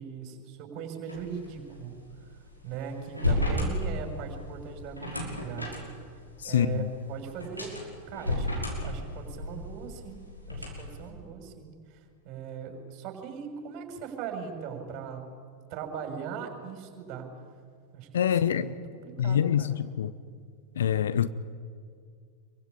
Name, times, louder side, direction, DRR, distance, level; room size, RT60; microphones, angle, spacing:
voice 1, 0.0-1.9 2.6-6.0 6.4-10.2 10.5-12.0 12.2-15.2 15.7-17.3 17.9-19.8, right 6 dB, 40° right, 6.3 m, -39 dB
sound 1, 1.1-11.1, left 1 dB, 90° left, 5.9 m, -33 dB
voice 2, 6.4-6.9 18.1-18.7 19.2-20.1 20.7-21.3, left 9 dB, 65° left, 0.9 m, -25 dB
27.5 x 23.5 x 8.8 m
figure-of-eight pair, 90°, 0 cm